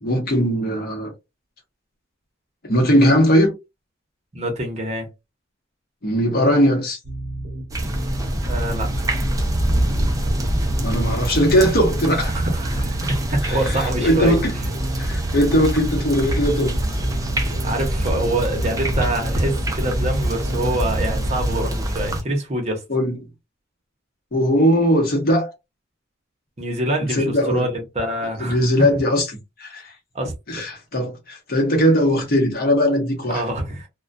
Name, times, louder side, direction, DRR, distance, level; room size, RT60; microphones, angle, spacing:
voice 1, 0.0-1.1 2.6-3.5 6.0-7.0 10.8-12.3 13.4-14.6 15.0-16.8 22.9-23.3 24.3-25.5 27.0-27.7 28.4-29.9 30.5-33.5, equal, 50° left, 0.9 m, -19 dB
voice 2, 4.3-5.1 8.4-8.9 12.3-14.4 17.6-22.8 26.6-28.6 30.1-30.3 33.3-33.9, right 1 dB, 35° right, 0.8 m, -25 dB
sound 1, 7.0-21.7, right 1 dB, 65° right, 0.9 m, -31 dB
sound 2, 7.7-22.2, equal, 20° right, 0.5 m, -25 dB
2.2 x 2.2 x 2.5 m
head